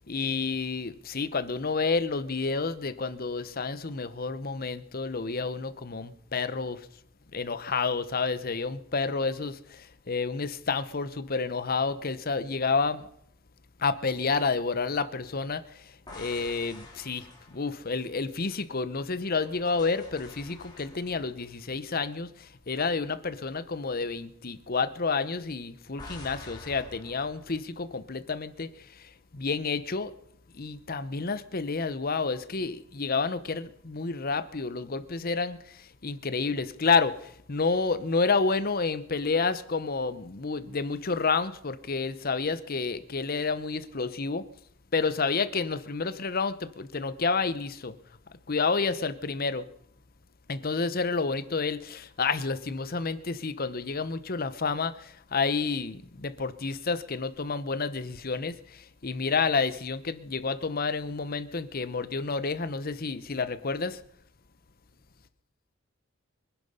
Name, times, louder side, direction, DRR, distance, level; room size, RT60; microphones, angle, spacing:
voice 1, 0.1-6.9 7.3-13.1 13.8-30.1 30.5-44.4 44.9-48.0 48.5-49.7 50.5-64.0, left 4 dB, 45° left, 0.8 m, -30 dB
sound 1, 16.1-18.8 19.3-22.7 23.0-23.3 26.0-27.6, left 2 dB, 20° left, 4.0 m, -48 dB
23.5 x 10.5 x 5.5 m
head